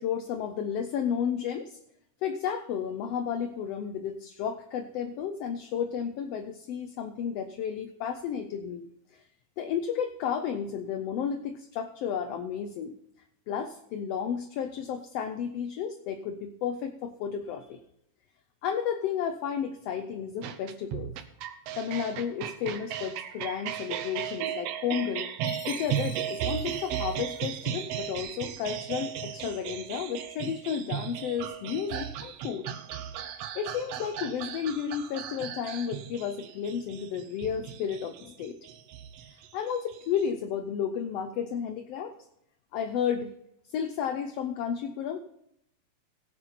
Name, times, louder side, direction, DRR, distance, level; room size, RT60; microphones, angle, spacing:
voice 1, 0.0-1.8 2.2-8.9 9.1-9.2 9.6-13.0 13.5-17.8 18.6-21.1 21.8-25.3 25.7-32.7 33.5-38.6 39.3-42.1 42.7-43.3 43.7-45.2, left 8 dB, 75° left, 7 dB, 1.4 m, -32 dB
sound 1, 20.4-40.2, right 9 dB, 70° right, 1.7 m, -36 dB
Chime, 25.4-27.9, left 7 dB, 60° left, 1.9 m, -48 dB
17.5 x 7.7 x 4.1 m, 0.76 s
omnidirectional pair, 3.5 m